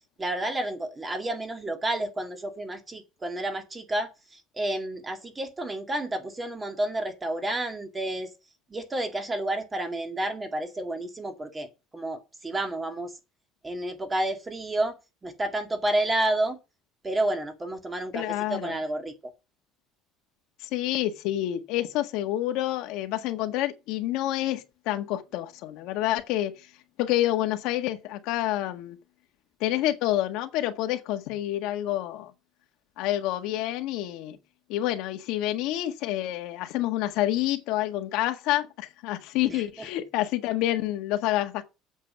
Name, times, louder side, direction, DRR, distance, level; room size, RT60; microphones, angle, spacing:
voice 1, 0.2-8.3 8.7-13.1 13.6-15.0 15.2-16.6 17.0-19.3 39.5-39.9, right 1 dB, 15° right, 2.1 m, -30 dB
voice 2, 18.1-18.8 20.7-26.5 27.0-29.0 29.6-32.3 33.0-34.4 34.7-41.6, left 14 dB, 70° left, 1.6 m, -28 dB
8.5 x 7.3 x 6.9 m
cardioid pair, 140°, 0 cm